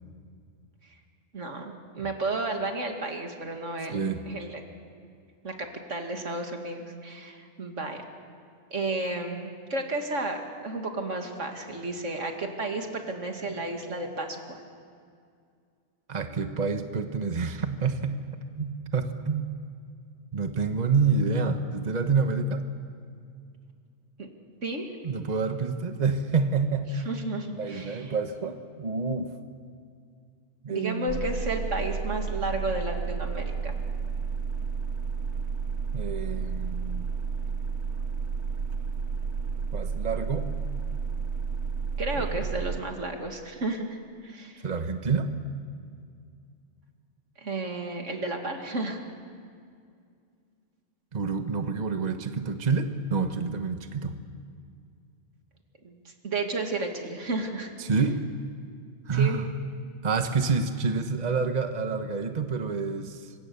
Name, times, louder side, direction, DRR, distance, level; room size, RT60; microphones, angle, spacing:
voice 1, 1.3-4.6 5.4-8.0 8.7-14.6 24.2-24.3 24.6-24.9 27.1-28.1 30.7-33.7 42.0-44.0 44.2-44.6 47.4-49.0 55.8-57.7 59.1-59.4, right 2 dB, 90° right, 3 dB, 2.6 m, -32 dB
voice 2, 16.1-18.2 18.6-19.5 20.3-22.6 25.0-27.1 27.5-29.3 30.6-31.3 35.9-37.1 39.7-40.5 42.1-42.3 44.6-45.3 51.1-54.2 57.8-58.2 59.1-59.5 60.0-63.3, right 5 dB, 35° right, 7 dB, 1.2 m, -28 dB
sound 1, 31.1-42.8, right 5 dB, 70° right, 1.4 m, -31 dB
26.0 x 24.5 x 7.0 m, 2.3 s
omnidirectional pair, 1.2 m